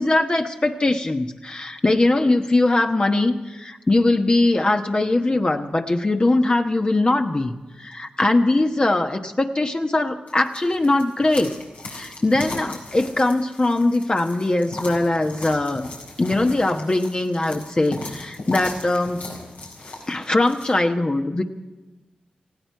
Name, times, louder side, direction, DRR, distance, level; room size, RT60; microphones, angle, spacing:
voice 1, 0.0-11.5 11.9-15.9 16.2-19.3 20.1-21.4, left 2 dB, 35° left, 3 dB, 1.1 m, -21 dB
sound 1, 10.3-20.7, left 2 dB, 90° left, 4.7 m, -37 dB
19.0 x 16.0 x 4.6 m, 1.2 s
cardioid pair, 55°, 3 cm